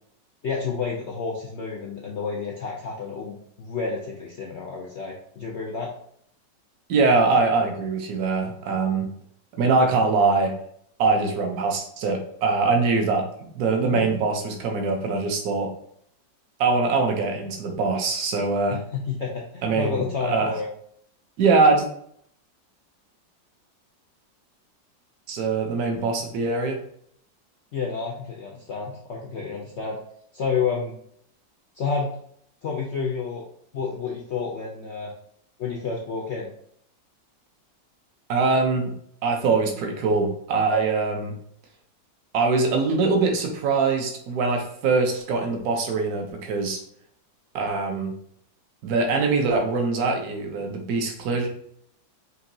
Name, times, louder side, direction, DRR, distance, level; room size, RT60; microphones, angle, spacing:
voice 1, 0.4-5.9 13.8-14.0 18.7-20.7 27.7-30.0 30.3-30.9 31.7-32.1 32.6-33.4 33.7-35.1 35.6-36.5, left 5 dB, 85° left, -1 dB, 0.6 m, -30 dB
voice 2, 6.9-9.1 9.5-10.5 11.0-13.3 13.5-15.7 16.6-18.8 19.6-20.5 21.4-21.9 25.3-26.8 38.3-38.9 39.2-41.3 42.3-46.8 47.5-48.1 48.8-51.5, right 4 dB, 65° right, 3 dB, 1.2 m, -23 dB
5.7 x 2.8 x 2.7 m, 0.66 s
omnidirectional pair, 2.0 m